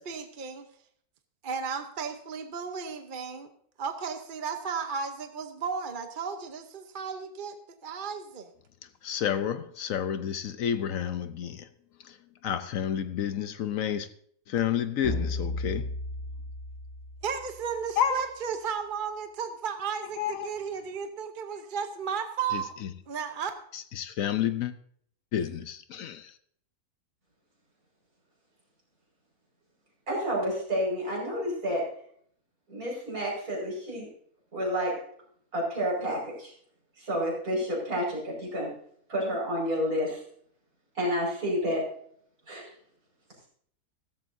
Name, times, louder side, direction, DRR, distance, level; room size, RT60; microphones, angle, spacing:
voice 1, 0.1-0.7 1.4-3.5 3.8-7.6 7.8-8.5 17.2-22.7 23.1-23.5, right 6 dB, 40° right, 0.9 m, -34 dB
voice 2, 9.0-11.7 12.0-12.1 12.4-14.1 14.5-15.9 18.0-18.2 20.2-20.5 22.5-22.6 23.7-24.7 25.3-26.3, left 9 dB, 70° left, 1.0 m, -30 dB
sound 1, 15.0-17.7, left 2 dB, 85° left, 5.4 m, -34 dB
voice 3, 30.1-31.9 32.7-34.1 34.5-35.0 35.5-36.5 37.0-38.7 39.1-40.2 41.0-41.9 42.5-42.6, equal, 70° right, 5.6 m, -30 dB
15.5 x 13.5 x 2.6 m
omnidirectional pair, 1.6 m